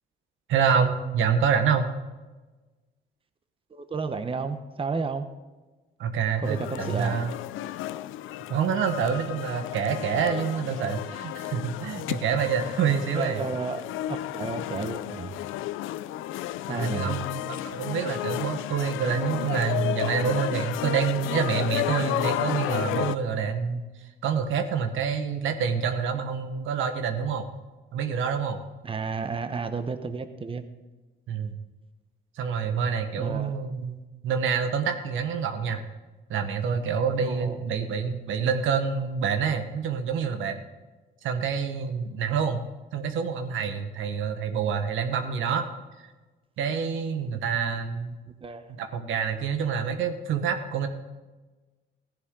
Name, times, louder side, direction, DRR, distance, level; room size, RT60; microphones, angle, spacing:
voice 1, 0.5-1.9 6.0-7.3 8.5-13.4 16.7-23.8 24.2-27.5 27.9-28.6 31.3-31.5 32.4-35.8 36.3-40.6 41.2-42.6 42.9-45.6 46.6-48.2 48.8-50.9, right 6 dB, 85° right, 6 dB, 1.2 m, -27 dB
voice 2, 3.7-5.3 6.4-7.2 12.9-13.8 14.1-15.3 16.7-17.1 28.8-30.6 33.2-33.6 37.2-37.6 47.3-47.4 48.4-48.7, right 4 dB, 25° right, 9 dB, 0.9 m, -32 dB
sound 1, 6.4-23.2, left 14 dB, 90° left, 0.4 m, -32 dB
15.0 x 10.5 x 3.7 m, 1.2 s
cardioid pair, 90°, 20 cm